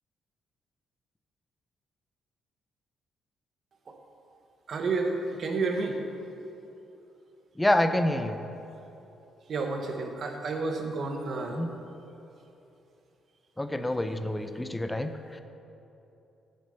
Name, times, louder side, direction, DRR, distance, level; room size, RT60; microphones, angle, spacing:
voice 1, 4.7-5.1 5.4-6.0 9.5-11.6, right 3 dB, 50° right, 3 dB, 1.2 m, -30 dB
voice 2, 7.6-8.4 11.5-11.7 13.6-15.4, left 1 dB, 10° left, 9 dB, 0.6 m, -27 dB
8.5 x 6.7 x 6.8 m, 2.9 s
cardioid pair, 90°, 0 cm